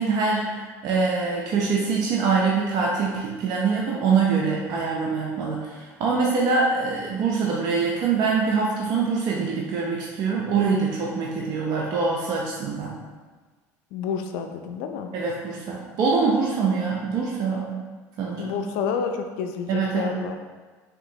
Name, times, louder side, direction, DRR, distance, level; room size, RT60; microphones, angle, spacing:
voice 1, 0.0-12.9 15.1-17.8 18.2-18.5 19.7-20.1, right 4 dB, 55° right, -3 dB, 0.5 m, -24 dB
voice 2, 13.9-15.1 18.4-20.4, left 6 dB, 75° left, 6 dB, 0.4 m, -29 dB
3.6 x 2.9 x 2.7 m, 1.4 s
supercardioid pair, 105°, 8 cm